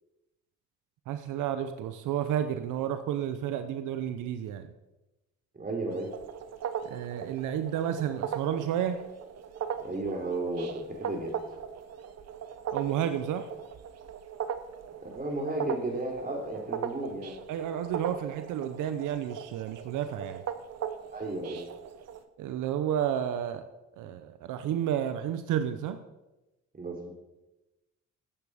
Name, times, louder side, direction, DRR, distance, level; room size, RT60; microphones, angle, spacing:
voice 1, 1.1-4.7 6.8-9.0 12.7-13.5 17.5-20.4 22.4-23.6 24.0-26.0, right 10 dB, 90° right, 10 dB, 0.8 m, -31 dB
voice 2, 5.5-6.1 9.8-11.3 15.0-17.4 21.1-21.6 26.7-27.1, right 2 dB, 30° right, 2 dB, 3.8 m, -33 dB
sound 1, 5.9-22.2, right 8 dB, 60° right, 1.0 m, -39 dB
14.0 x 8.5 x 5.1 m, 1.0 s
cardioid pair, 90°, 30 cm